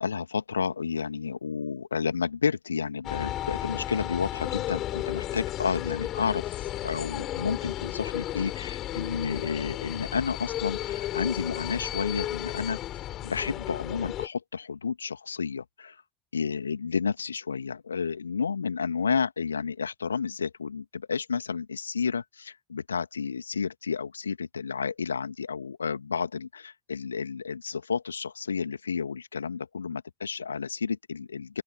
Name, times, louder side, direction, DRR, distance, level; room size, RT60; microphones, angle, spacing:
voice 1, 0.0-12.8 13.2-16.0 16.3-31.6, left 6 dB, 80° left, 2.1 m, -31 dB
sound 1, 3.0-14.3, left 14 dB, 45° left, 5.5 m, -34 dB
open air
figure-of-eight pair, 70°, 0 cm